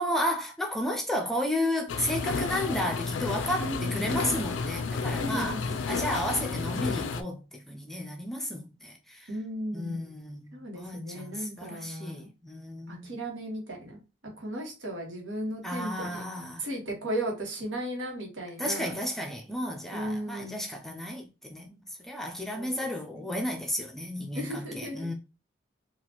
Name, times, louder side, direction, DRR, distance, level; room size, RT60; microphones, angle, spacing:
voice 1, 0.0-5.6 5.9-9.3 9.7-13.1 15.6-16.7 18.6-25.1, equal, ahead, 0.4 m, -33 dB
sound 1, 1.9-7.2, left 4 dB, 85° left, 0.4 m, -31 dB
voice 2, 3.6-4.1 5.2-5.9 9.3-10.1 10.5-12.3 12.9-14.0 14.4-16.2 16.6-19.0 19.9-20.6 22.5-23.2 24.3-25.1, equal, 85° right, 1.3 m, -36 dB
3.9 x 2.4 x 2.9 m
head